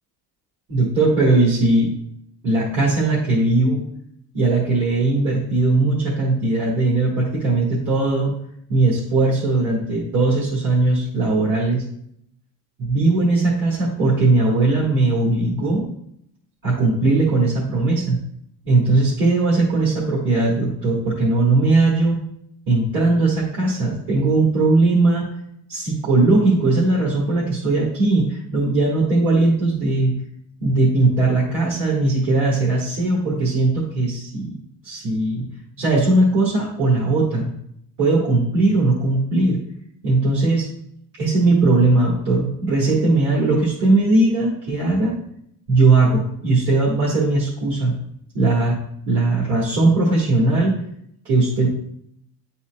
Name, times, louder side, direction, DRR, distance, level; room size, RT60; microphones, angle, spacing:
voice 1, 0.7-1.9 2.4-3.8 4.3-8.3 8.7-11.8 12.8-15.9 16.6-18.2 18.7-22.2 22.7-25.3 25.7-30.1 30.6-34.6 34.8-35.5 35.8-37.5 38.0-39.6 40.0-40.7 41.2-45.1 45.7-47.9 48.3-48.8 49.1-50.8 51.2-51.7, right 2 dB, 55° right, -7 dB, 1.9 m, -19 dB
10.0 x 4.2 x 2.3 m, 0.71 s
cardioid pair, 180°, 39 cm